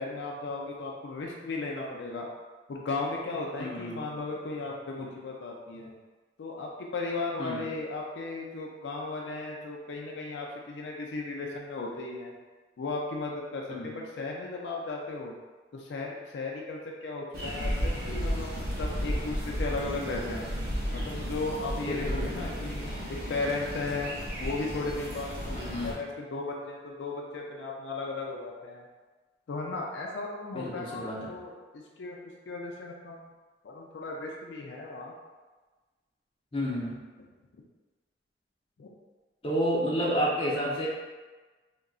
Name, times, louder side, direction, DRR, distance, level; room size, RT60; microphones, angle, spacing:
voice 1, 0.0-2.3 2.7-5.9 6.4-12.3 12.8-15.3 15.7-20.5 20.9-24.1 24.4-25.6 25.8-28.9 29.5-33.3 33.6-35.1 38.8-38.9, left 3 dB, 85° left, -1 dB, 0.4 m, -36 dB
voice 2, 3.6-4.0 7.4-7.6 13.7-13.9 21.9-22.6 25.5-25.9 30.5-31.3 36.5-37.0 39.4-40.9, equal, 30° left, -6 dB, 0.6 m, -31 dB
sound 1, 17.3-25.9, equal, 60° right, 0.8 m, -33 dB
3.7 x 2.2 x 2.3 m, 1.3 s
head